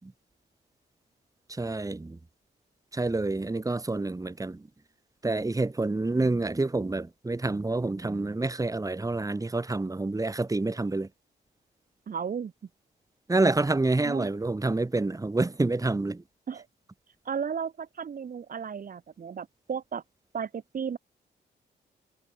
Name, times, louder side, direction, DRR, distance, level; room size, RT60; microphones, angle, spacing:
voice 1, 1.5-2.2 2.9-4.7 5.2-11.1 13.3-16.2, right 2 dB, 20° right, 2.8 m, -28 dB
voice 2, 12.1-12.5 14.0-14.3 16.5-16.7 17.3-20.0 20.3-21.0, right 7 dB, 50° right, 2.0 m, -34 dB
cardioid pair, 80°, 18 cm